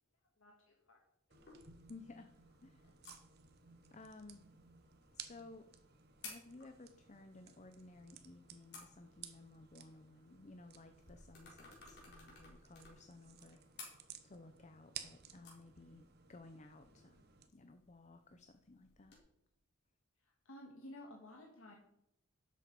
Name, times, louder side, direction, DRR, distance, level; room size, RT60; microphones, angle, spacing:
voice 1, 0.4-1.0 2.8-2.9 20.2-21.7, left 1 dB, 65° left, 0 dB, 1.7 m, -54 dB
sound 1, 1.3-19.2, left 3 dB, 50° left, 4.4 m, -60 dB
sound 2, 1.3-17.5, right 9 dB, 50° right, 1.0 m, -57 dB
voice 2, 1.9-2.3 2.6-2.9 3.9-4.4 5.1-5.7 6.2-13.6 14.2-17.2 17.5-19.1, left 2 dB, 35° left, 8 dB, 0.7 m, -57 dB
11.5 x 7.8 x 5.3 m, 0.80 s
head